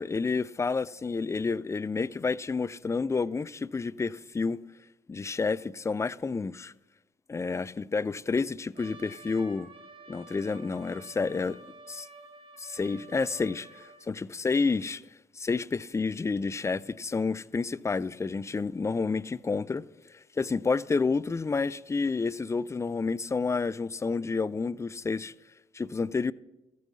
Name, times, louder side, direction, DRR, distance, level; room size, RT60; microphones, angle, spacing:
voice 1, 0.0-4.6 5.1-6.7 7.3-9.7 10.1-11.6 11.9-12.1 12.6-15.0 15.4-19.8 20.1-25.3 25.7-26.3, left 4 dB, 20° left, 0.3 m, -30 dB
Trumpet, 8.8-14.1, right 3 dB, 35° right, 2.1 m, -50 dB
14.0 x 5.4 x 6.2 m
supercardioid pair, 55°, 15 cm